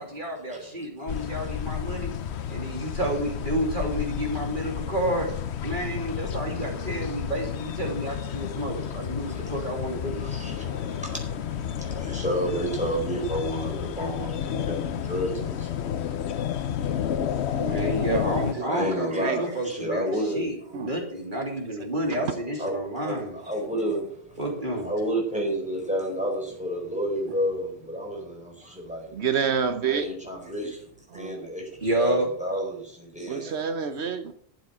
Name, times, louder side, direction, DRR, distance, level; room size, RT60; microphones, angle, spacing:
voice 1, 0.0-2.1 2.5-5.3 5.6-10.2 17.6-23.3 24.4-24.9 27.2-27.3 31.8-32.3, right 1 dB, 50° right, 1 dB, 3.1 m, -30 dB
sound 1, 1.1-18.5, left 9 dB, 80° left, 1.0 m, -31 dB
voice 2, 8.9-9.4 10.1-15.7 18.6-20.5 22.6-24.1 24.8-29.1 29.8-30.8 31.1-33.6, equal, 5° right, -1 dB, 4.6 m, -31 dB
voice 3, 17.3-17.7 18.6-19.4 20.7-20.9 21.8-21.9 22.2-22.3 29.1-30.1 30.3-30.7 31.1-31.3 33.3-34.3, right 7 dB, 80° right, 8 dB, 1.2 m, -29 dB
12.0 x 7.5 x 7.6 m, 0.62 s
omnidirectional pair, 1.1 m